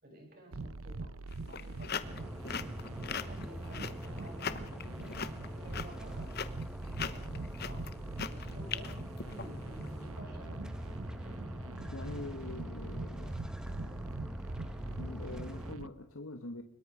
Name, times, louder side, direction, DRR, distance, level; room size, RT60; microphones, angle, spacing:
voice 1, 0.0-1.1 1.4-2.3 3.0-6.3 6.7-7.8 8.2-10.6, right 1 dB, 45° right, 7.6 m, -53 dB
sound 1, 0.5-15.9, right 2 dB, 85° right, 1.0 m, -44 dB
sound 2, 1.3-9.9, left 6 dB, 50° left, 1.1 m, -40 dB
sound 3, 2.0-15.7, equal, 5° right, 1.1 m, -43 dB
voice 2, 11.9-13.4 15.0-16.6, left 2 dB, 85° left, 1.5 m, -44 dB
24.0 x 22.0 x 5.1 m
head